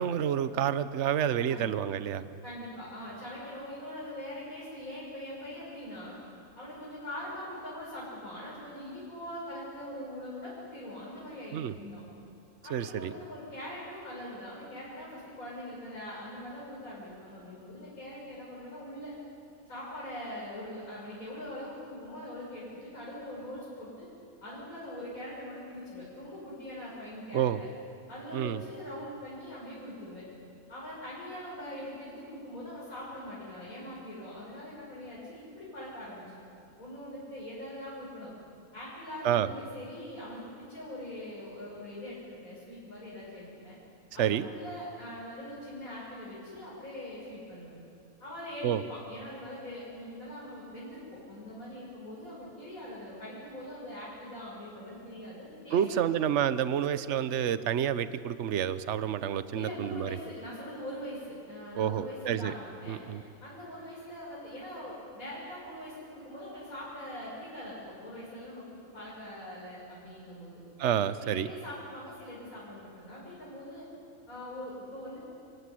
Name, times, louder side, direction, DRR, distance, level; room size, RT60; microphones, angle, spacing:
voice 1, 0.0-2.3 11.5-11.7 12.7-13.1 27.3-27.6 28.3-28.6 39.2-39.5 44.2-44.5 48.6-48.8 55.7-60.2 61.8-62.5 62.9-63.2 70.8-71.5, right 9 dB, 60° right, 13 dB, 1.1 m, -29 dB
voice 2, 2.4-6.2 6.6-12.0 12.6-19.1 19.7-24.1 24.4-27.7 28.1-30.2 30.7-36.2 36.8-38.3 38.7-43.8 44.1-47.7 48.2-56.1 59.5-70.6 71.2-73.9 74.3-75.2, left 1 dB, 80° left, -8 dB, 7.0 m, -42 dB
28.5 x 16.5 x 9.9 m, 2.6 s
omnidirectional pair, 1.5 m